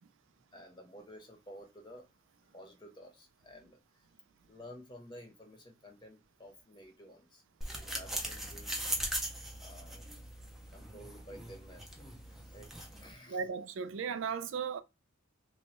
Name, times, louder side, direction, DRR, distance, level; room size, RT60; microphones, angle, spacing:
voice 1, 0.5-2.1 2.4-3.8 4.5-8.8 9.6-10.2 10.7-12.7 13.0-13.4, equal, 25° left, 0.9 m, -53 dB
sound 1, 7.6-13.1, equal, ahead, 0.5 m, -40 dB
voice 2, 13.3-14.8, right 6 dB, 75° right, 0.4 m, -36 dB
3.1 x 2.2 x 2.9 m
head